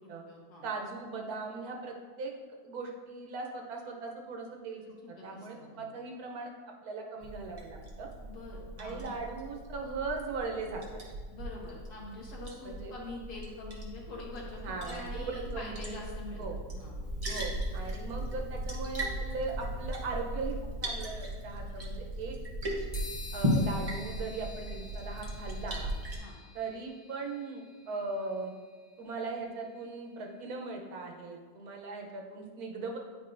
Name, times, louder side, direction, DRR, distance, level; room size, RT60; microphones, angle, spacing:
voice 1, 0.0-0.7 5.0-5.9 8.2-9.1 11.3-16.4 16.7-16.9 26.2-26.4, left 3 dB, 90° left, -3 dB, 1.9 m, -45 dB
voice 2, 0.6-2.3 2.6-4.8 5.2-8.1 8.8-10.8 12.6-12.9 14.6-16.0 16.4-16.6 17.3-22.4 23.3-25.9 26.5-28.5 29.0-33.0, right 3 dB, 75° right, 1 dB, 1.3 m, -39 dB
Liquid, 7.2-26.2, equal, 30° right, 0.8 m, -37 dB
sound 1, 22.9-30.6, left 4 dB, 20° left, 0.9 m, -51 dB
9.7 x 4.5 x 2.6 m, 1.5 s
omnidirectional pair, 1.6 m